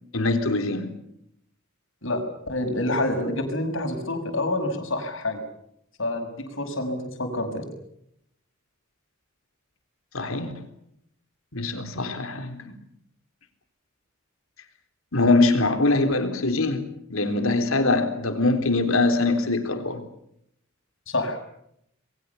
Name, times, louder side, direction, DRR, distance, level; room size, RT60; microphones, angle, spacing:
voice 1, 0.1-0.9 10.1-10.7 11.5-12.7 15.1-16.8 17.1-20.0, left 2 dB, 80° left, 7 dB, 3.8 m, -23 dB
voice 2, 2.0-5.4 6.0-7.7 21.1-21.5, left 1 dB, 65° left, 5 dB, 6.3 m, -27 dB
28.5 x 22.0 x 7.1 m, 0.74 s
head